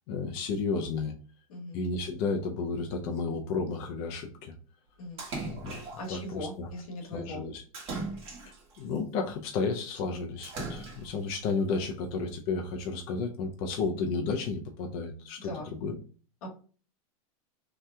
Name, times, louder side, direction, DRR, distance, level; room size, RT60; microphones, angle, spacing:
voice 1, 0.1-1.1 1.7-4.5 5.4-5.8 6.1-6.7 7.0-7.6 8.8-16.0, left 4 dB, 45° left, 2 dB, 0.5 m, -32 dB
Splash splatter, 5.2-6.2 7.7-8.8 10.4-11.3, right 3 dB, 35° right, 1.1 m, -38 dB
voice 2, 6.0-7.4 15.4-15.7 16.4-16.5, left 1 dB, 80° left, 2 dB, 1.1 m, -39 dB
2.8 x 2.2 x 3.4 m, 0.40 s
supercardioid pair, 140°, 18 cm